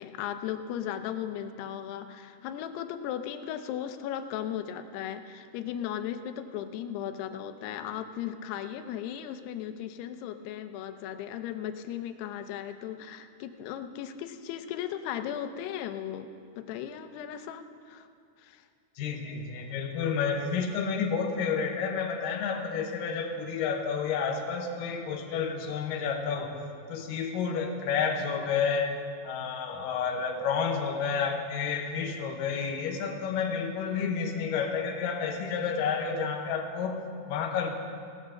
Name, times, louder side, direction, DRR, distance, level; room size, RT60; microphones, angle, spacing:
voice 1, 0.0-16.3 16.6-18.1 18.4-18.7, left 10 dB, 90° left, 8 dB, 2.8 m, -36 dB
voice 2, 19.0-26.6 26.9-29.0 29.2-37.7, left 6 dB, 70° left, 3 dB, 2.5 m, -30 dB
18.5 x 7.3 x 6.3 m, 2.3 s
omnidirectional pair, 4.6 m